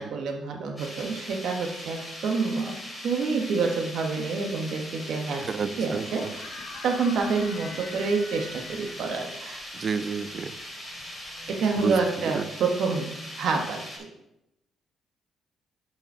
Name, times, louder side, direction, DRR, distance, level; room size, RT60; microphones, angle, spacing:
voice 1, 0.0-2.8 3.0-6.6 6.8-9.6 11.5-14.1, right 4 dB, 75° right, 2 dB, 1.4 m, -28 dB
sound 1, 0.8-14.0, equal, 10° left, 3.0 m, -40 dB
sound 2, 5.4-12.3, left 4 dB, 75° left, 1.4 m, -46 dB
voice 2, 5.4-6.3 9.7-10.5 11.8-12.0 12.2-12.5, right 5 dB, 45° right, 13 dB, 0.5 m, -30 dB
6.9 x 5.6 x 4.8 m, 0.86 s
cardioid pair, 90°, 0 cm